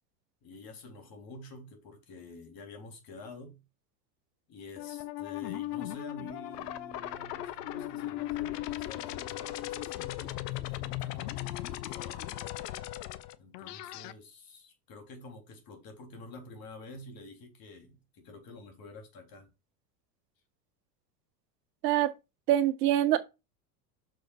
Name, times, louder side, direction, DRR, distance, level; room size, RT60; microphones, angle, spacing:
voice 1, 0.4-3.6 4.5-12.4 13.4-19.5, left 2 dB, 45° left, 3.9 m, -49 dB
sound 1, 4.8-14.1, left 15 dB, 70° left, 1.0 m, -37 dB
voice 2, 22.5-23.2, right 12 dB, 70° right, 1.5 m, -24 dB
6.6 x 4.7 x 6.3 m
hypercardioid pair, 100°, 50 cm